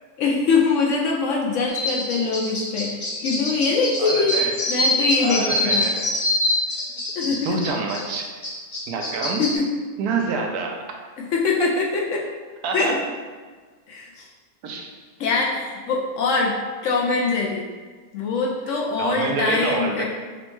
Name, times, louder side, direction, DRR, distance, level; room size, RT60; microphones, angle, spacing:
voice 1, 0.2-2.9 3.2-4.3 4.7-5.9 7.2-7.6 9.4-9.7 11.3-12.2 12.7-13.0 13.9-14.3 15.2-16.5 16.8-17.6 18.1-20.0, left 4 dB, 70° left, -2 dB, 0.8 m, -23 dB
sound 1, 1.7-9.6, left 1 dB, 50° left, 0.3 m, -25 dB
voice 2, 4.0-4.6 5.2-6.2 6.9-8.3 8.9-9.4 10.0-11.0 11.6-11.7 12.6-12.9 14.6-14.9 19.0-20.0, right 4 dB, 85° right, 2 dB, 1.1 m, -27 dB
5.1 x 2.3 x 3.0 m, 1.5 s
omnidirectional pair, 1.6 m